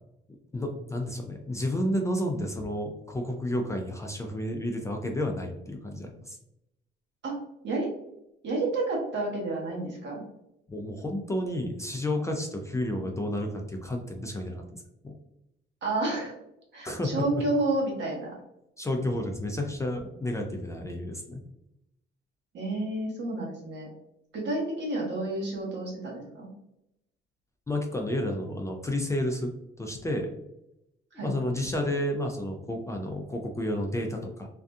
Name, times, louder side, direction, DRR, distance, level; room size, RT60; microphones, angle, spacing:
voice 1, 0.5-6.4 10.7-15.1 16.8-17.3 18.8-21.4 27.7-30.3 31.1-34.5, left 1 dB, 15° left, 2 dB, 0.3 m, -31 dB
voice 2, 8.4-10.2 15.8-16.3 16.7-18.3 22.5-23.9 24.3-26.5 31.1-31.3, right 2 dB, 65° right, -3 dB, 1.1 m, -30 dB
2.6 x 2.4 x 2.2 m, 0.84 s
cardioid pair, 110°, 20 cm